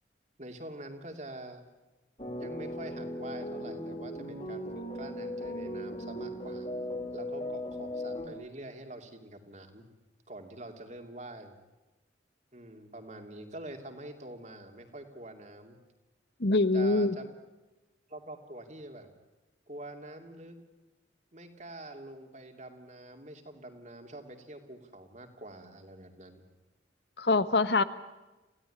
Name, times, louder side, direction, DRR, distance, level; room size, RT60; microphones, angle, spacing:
voice 1, 0.4-1.6 2.2-6.7 7.1-9.9 10.3-11.5 12.5-15.8 16.7-17.3 18.1-19.1 19.7-20.6 21.3-26.4, right 1 dB, 40° right, 5 dB, 2.7 m, -46 dB
sound 1, 2.2-8.3, left 1 dB, 35° left, 3.9 m, -37 dB
voice 2, 16.4-17.1 27.2-27.8, left 3 dB, 65° left, 14 dB, 1.2 m, -24 dB
28.0 x 16.5 x 9.9 m, 1.1 s
head